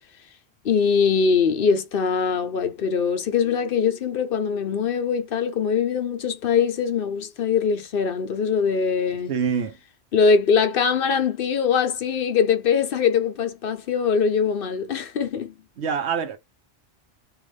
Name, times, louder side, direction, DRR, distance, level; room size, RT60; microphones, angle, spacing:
voice 1, 0.6-9.3 10.1-15.5, left 6 dB, 60° left, 0.8 m, -22 dB
voice 2, 9.3-9.8 15.8-16.4, right 6 dB, 80° right, 1.1 m, -25 dB
3.3 x 2.5 x 3.3 m
omnidirectional pair, 1.1 m